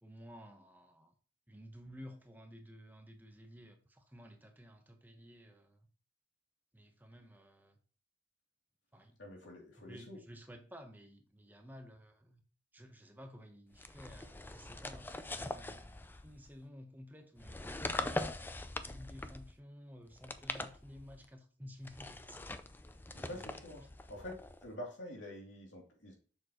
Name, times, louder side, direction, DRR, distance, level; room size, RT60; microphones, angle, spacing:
voice 1, 0.0-1.1 1.5-5.9 6.7-7.8 8.9-9.1 9.8-12.4 12.7-18.4 18.9-22.4 23.3-23.9, equal, 10° right, 0.9 m, -54 dB
voice 2, 9.2-10.2 23.1-23.8 24.1-26.2, left 1 dB, 85° left, 2.8 m, -47 dB
sound 1, 13.8-16.5 17.4-19.6 20.1-21.3 21.8-24.7, left 2 dB, 10° left, 0.4 m, -42 dB
7.3 x 6.4 x 3.0 m
head